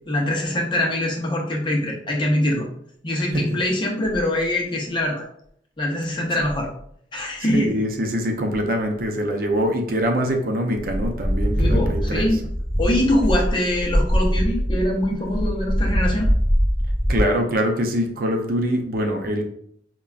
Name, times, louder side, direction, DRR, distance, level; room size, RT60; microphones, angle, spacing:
voice 1, 0.1-2.7 3.0-5.2 5.8-6.7 7.1-7.7 11.6-12.4 12.8-16.3, left 1 dB, 25° left, -1 dB, 0.6 m, -23 dB
voice 2, 7.4-12.4 17.1-19.4, equal, 50° right, 3 dB, 0.5 m, -24 dB
sound 1, 10.8-17.2, equal, 10° left, 1.0 m, -22 dB
5.1 x 2.2 x 2.3 m, 0.69 s
head